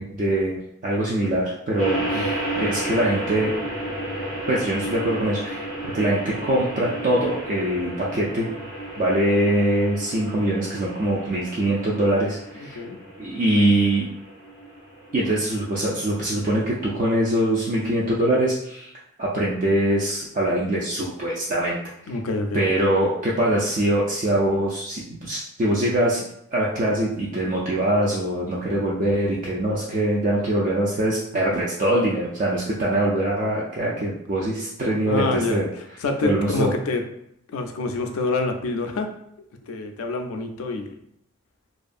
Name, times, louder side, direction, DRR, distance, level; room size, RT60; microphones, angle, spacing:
voice 1, 0.0-3.6 4.5-5.7 5.9-8.5 9.0-12.8 13.2-14.1 15.1-18.9 19.2-21.8 22.5-26.2 26.5-35.7 36.2-36.7, right 1 dB, 35° right, -5 dB, 0.3 m, -23 dB
sound 1, 1.8-17.1, right 1 dB, 60° right, 1.0 m, -33 dB
voice 2, 22.1-22.6 35.1-35.6 36.0-37.0 37.5-39.1 39.7-40.9, left 3 dB, 85° left, 5 dB, 0.4 m, -26 dB
2.6 x 2.4 x 2.4 m, 0.75 s
head